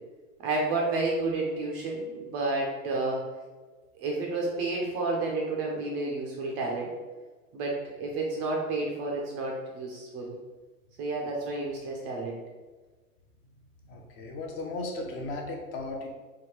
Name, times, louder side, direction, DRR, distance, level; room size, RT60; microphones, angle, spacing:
voice 1, 0.4-3.3 4.0-6.9 7.5-10.3 11.0-12.4, right 2 dB, 30° right, -1 dB, 0.4 m, -30 dB
voice 2, 13.9-16.1, left 2 dB, 30° left, 1 dB, 0.5 m, -36 dB
3.4 x 2.2 x 3.1 m, 1.3 s
hypercardioid pair, 115°, 43 cm